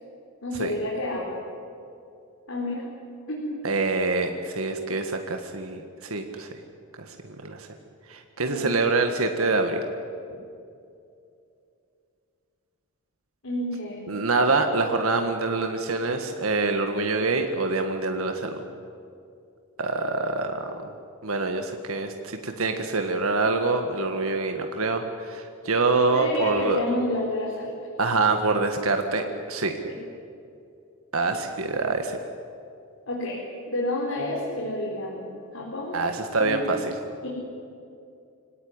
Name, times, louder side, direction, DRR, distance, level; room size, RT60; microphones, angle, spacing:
voice 1, 0.4-1.4 2.5-2.9 3.3-3.6 8.5-8.8 13.4-14.1 26.1-27.7 29.8-30.0 33.1-33.4 33.7-36.0 36.4-36.7 37.2-37.3, left 1 dB, 70° left, -4 dB, 4.6 m, -30 dB
voice 2, 3.6-6.5 7.1-7.7 8.1-9.8 14.1-18.6 19.8-20.9 21.2-26.8 28.0-29.7 31.1-32.2 35.9-36.9, right 3 dB, 75° right, 5 dB, 1.6 m, -25 dB
25.0 x 17.5 x 9.7 m, 2.6 s
head